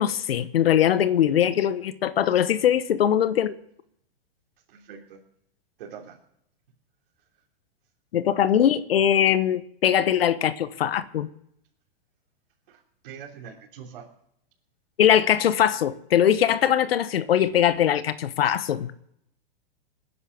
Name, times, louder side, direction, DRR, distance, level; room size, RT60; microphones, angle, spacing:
voice 1, 0.0-3.5 8.1-11.3 15.0-18.9, left 10 dB, 85° left, 1.1 m, -21 dB
voice 2, 4.7-5.2 5.8-6.2 12.7-14.1, right 7 dB, 60° right, 3.3 m, -43 dB
20.0 x 10.0 x 7.0 m
hypercardioid pair, 135°, 29 cm